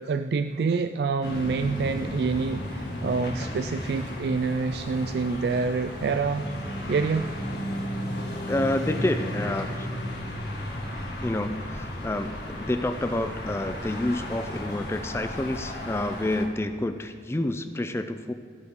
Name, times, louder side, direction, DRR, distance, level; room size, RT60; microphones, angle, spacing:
voice 1, 0.0-6.5 6.9-7.3, right 4 dB, 60° right, 9 dB, 0.3 m, -27 dB
sound 1, 1.2-16.5, left 1 dB, 65° left, 2.0 m, -34 dB
voice 2, 8.5-9.9 11.2-18.3, left 1 dB, 15° left, 9 dB, 0.4 m, -29 dB
17.0 x 8.1 x 3.7 m, 2.2 s
head